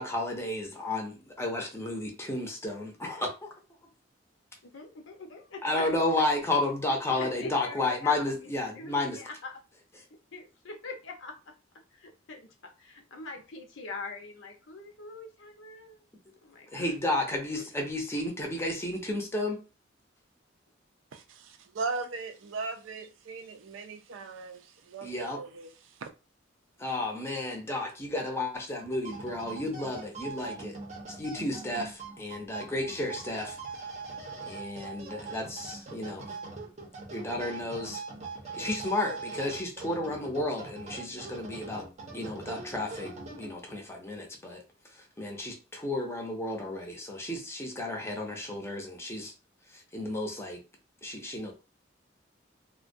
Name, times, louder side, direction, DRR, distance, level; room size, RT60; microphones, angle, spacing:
voice 1, 0.0-3.5 5.6-9.2 16.7-19.6 25.0-25.4 26.8-30.8 31.1-33.6 34.5-36.3 37.1-38.0 38.5-44.6 44.9-49.3 49.7-50.6 51.0-51.5, left 2 dB, 15° left, 0.6 m, -32 dB
voice 2, 4.6-6.2 7.2-8.3 8.7-9.6 10.3-11.3 12.0-16.0 16.4-16.8, left 3 dB, 85° left, 0.7 m, -42 dB
voice 3, 21.1-26.1, right 4 dB, 85° right, 0.4 m, -38 dB
sound 1, 28.8-43.8, right 3 dB, 35° right, 0.6 m, -42 dB
2.2 x 2.1 x 2.5 m
head